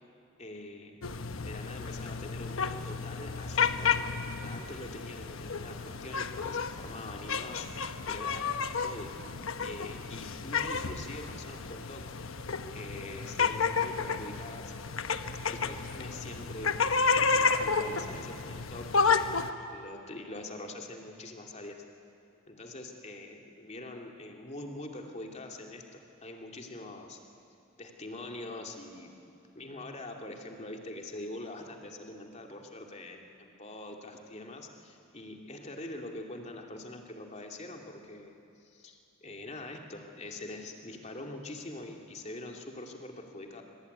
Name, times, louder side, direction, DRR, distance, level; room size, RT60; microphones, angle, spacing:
voice 1, 0.4-1.0 1.4-4.1 4.4-8.5 8.8-9.1 9.6-12.1 12.7-14.7 15.4-16.7 17.0-19.3 19.6-21.8 22.5-27.2 27.8-29.1 29.5-43.6, left 2 dB, 35° left, 2 dB, 2.6 m, -44 dB
sound 1, 1.0-19.5, left 5 dB, 85° left, 1.1 m, -31 dB
25.0 x 24.5 x 9.6 m, 2.6 s
head